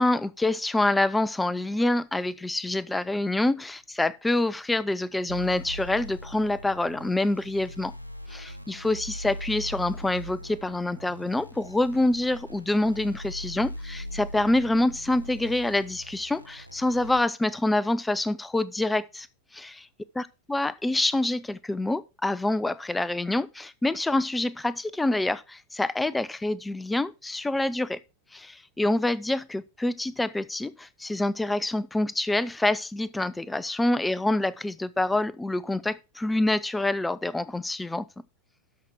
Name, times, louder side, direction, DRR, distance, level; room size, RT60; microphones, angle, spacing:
voice 1, 0.0-7.9 8.3-19.3 19.5-19.9 20.2-28.0 28.3-38.1, left 2 dB, 5° left, 0.4 m, -26 dB
sound 1, 5.3-17.2, equal, 85° left, 1.0 m, -40 dB
12.5 x 5.7 x 4.6 m
figure-of-eight pair, 90°, 0 cm